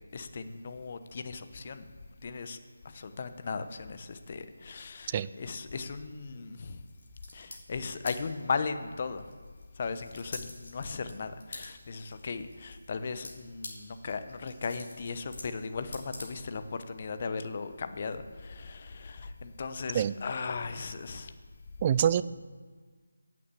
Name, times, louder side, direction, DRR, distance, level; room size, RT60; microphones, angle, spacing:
voice 1, 0.1-1.9 2.2-2.6 2.8-6.8 7.3-9.2 9.8-21.3, left 4 dB, 35° left, 10 dB, 0.9 m, -37 dB
sound 1, 6.8-16.8, left 2 dB, 55° left, 3.7 m, -48 dB
voice 2, 21.8-22.2, right 9 dB, 25° right, 16 dB, 0.3 m, -25 dB
9.8 x 8.5 x 8.3 m, 1.5 s
figure-of-eight pair, 165°, 0 cm